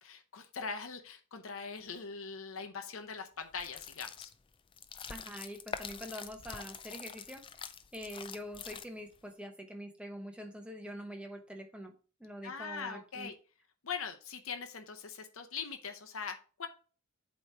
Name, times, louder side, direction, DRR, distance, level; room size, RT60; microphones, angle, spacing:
voice 1, 0.0-4.3 12.4-13.3 13.8-16.7, left 5 dB, 75° left, 6 dB, 0.7 m, -41 dB
sound 1, 3.5-9.2, left 6 dB, 25° left, 0.3 m, -45 dB
voice 2, 5.1-7.4 7.9-11.9 12.2-13.3, equal, 5° right, 4 dB, 0.9 m, -45 dB
8.1 x 3.1 x 4.4 m, 0.38 s
head